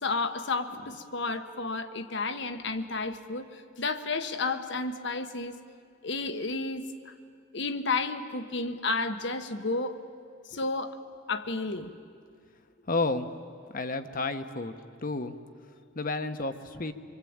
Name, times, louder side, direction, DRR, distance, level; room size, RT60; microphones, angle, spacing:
voice 1, 0.0-5.6 6.0-7.1 7.5-10.0 10.5-11.0 11.3-11.9, left 3 dB, 65° left, 9 dB, 1.3 m, -32 dB
voice 2, 12.9-13.3 13.7-14.7 15.0-15.3 15.9-16.9, left 3 dB, 45° left, 9 dB, 1.2 m, -31 dB
25.0 x 24.5 x 8.8 m, 2.2 s
head